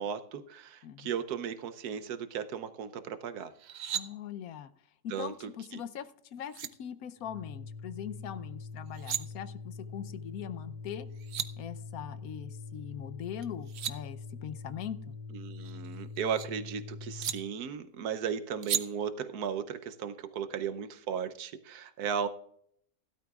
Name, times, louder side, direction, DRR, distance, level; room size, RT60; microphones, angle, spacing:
voice 1, 0.0-3.5 5.1-5.8 15.3-22.3, right 7 dB, 85° right, 10 dB, 1.3 m, -36 dB
sound 1, 3.5-4.0 6.1-6.2 6.5-6.7 8.8-9.2 10.9-11.0 11.1-11.5 13.4-13.9 15.4-16.5 17.2-17.3 18.6-18.8, right 10 dB, 60° right, 0.7 m, -35 dB
voice 2, 3.9-4.7 5.0-11.1 11.6-15.2, left 9 dB, 75° left, 13 dB, 1.2 m, -41 dB
Organ, 7.2-17.5, left 4 dB, ahead, 1.0 m, -44 dB
16.5 x 12.0 x 2.4 m, 0.68 s
omnidirectional pair, 1.6 m